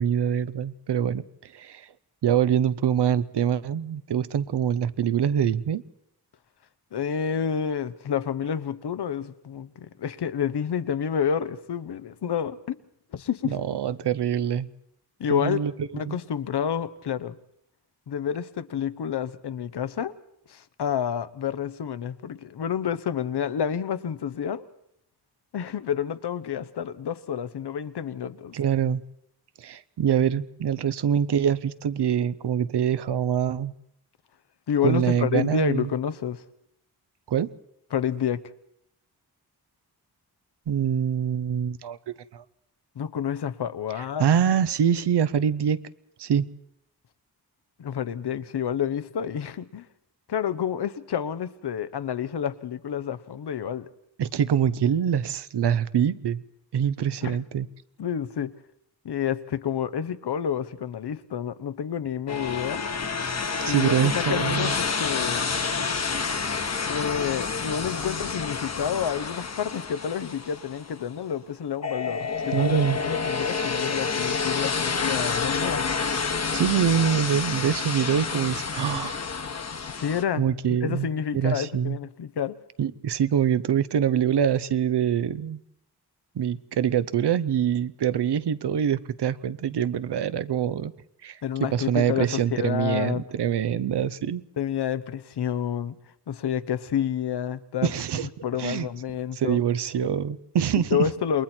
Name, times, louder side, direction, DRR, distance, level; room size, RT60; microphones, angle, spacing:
voice 1, 0.0-1.9 2.2-5.8 13.4-14.7 15.3-16.2 28.5-29.0 29.6-33.7 34.8-35.9 37.3-37.5 40.7-42.0 42.3-42.4 44.2-45.8 46.2-46.5 54.2-56.4 56.7-57.7 63.6-64.7 72.5-73.0 76.5-79.2 80.4-82.0 82.8-85.6 86.3-90.9 91.2-94.4 97.8-98.3 98.6-98.9 99.4-101.1, right 8 dB, 80° right, 14 dB, 0.8 m, -24 dB
voice 2, 6.9-12.8 13.1-13.6 15.2-17.4 18.1-20.1 20.5-24.7 25.5-28.5 34.7-36.4 37.9-38.4 43.0-44.3 47.8-49.9 50.3-53.9 57.2-57.4 58.0-58.5 59.0-62.9 63.7-64.7 65.0-65.5 66.9-75.9 79.9-80.4 80.8-82.6 91.4-93.3 94.6-95.9 96.3-97.9 98.4-99.6 100.7-101.4, left 8 dB, 80° left, 13 dB, 0.9 m, -29 dB
sound 1, 62.3-71.1 71.8-80.2, left 5 dB, 40° left, 1.1 m, -29 dB
28.5 x 21.0 x 4.4 m, 0.76 s
wide cardioid pair, 100°, 40 cm